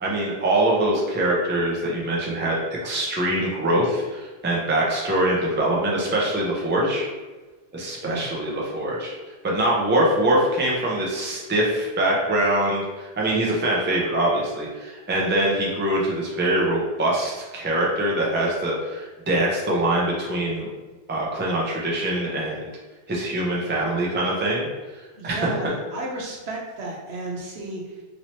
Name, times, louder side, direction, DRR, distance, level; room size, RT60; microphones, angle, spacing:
voice 1, 0.0-7.1 7.7-9.1 9.4-20.7 21.1-22.7 23.1-24.7 25.2-25.7, right 1 dB, 15° right, -4 dB, 0.4 m, -23 dB
voice 2, 8.0-8.3 25.1-28.0, right 2 dB, 75° right, -2 dB, 1.0 m, -33 dB
3.1 x 2.8 x 2.9 m, 1.3 s
omnidirectional pair, 1.1 m